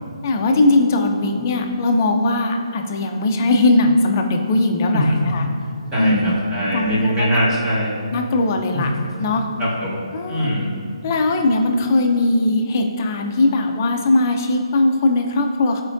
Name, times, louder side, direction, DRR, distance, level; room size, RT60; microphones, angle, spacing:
voice 1, 0.2-5.4 6.0-6.3 6.7-7.4 8.1-8.9 9.2-9.5 10.1-10.5 11.0-15.8, left 2 dB, 30° left, 3 dB, 0.5 m, -19 dB
voice 2, 5.9-8.0 8.7-8.8 9.6-10.0 10.3-10.7, equal, 15° right, -8 dB, 1.4 m, -22 dB
9.8 x 4.4 x 2.6 m, 2.3 s
hypercardioid pair, 165°, 3 cm